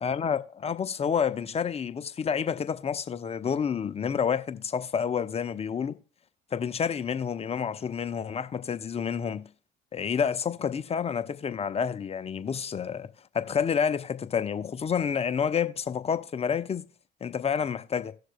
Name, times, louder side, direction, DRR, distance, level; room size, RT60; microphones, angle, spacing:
voice 1, 0.0-6.0 6.5-9.4 9.9-13.1 13.3-16.9 17.2-18.1, left 7 dB, 30° left, 0.7 m, -29 dB
17.5 x 6.5 x 2.2 m
hypercardioid pair, 65°, 21 cm